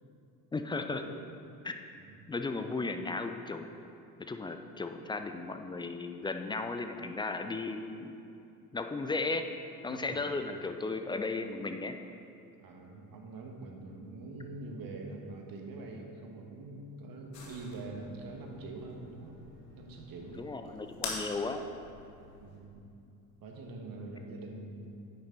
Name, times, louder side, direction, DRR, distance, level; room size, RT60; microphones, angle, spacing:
voice 1, 0.5-1.0 1.6-1.8 2.3-3.7 4.2-8.2 8.7-9.4 9.8-12.0 20.3-21.7, left 3 dB, 10° left, 6 dB, 0.4 m, -35 dB
voice 2, 9.9-10.4 12.6-19.4 19.7-20.4 22.4-22.8 23.4-25.0, right 2 dB, 45° right, 2 dB, 1.6 m, -44 dB
sound 1, 17.3-22.6, left 3 dB, 75° left, 1.7 m, -45 dB
10.5 x 8.6 x 3.9 m, 2.6 s
figure-of-eight pair, 55°, 49 cm